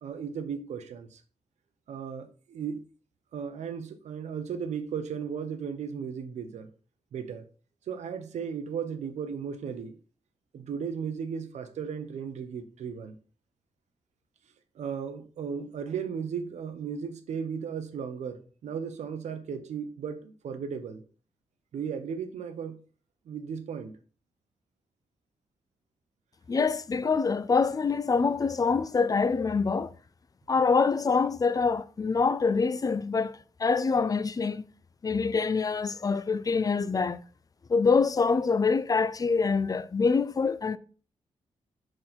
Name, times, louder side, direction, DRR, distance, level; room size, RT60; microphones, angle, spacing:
voice 1, 0.0-1.2 1.9-2.8 3.3-6.7 7.1-7.5 7.9-10.0 10.5-13.2 14.7-21.0 21.7-22.8 23.3-24.0, right 7 dB, 80° right, 0.9 m, -35 dB
voice 2, 26.5-29.9 30.5-33.3 33.6-34.6 35.0-37.2 37.7-40.8, left 4 dB, 30° left, 0.5 m, -25 dB
6.3 x 3.9 x 4.4 m
cardioid pair, 90°, 11 cm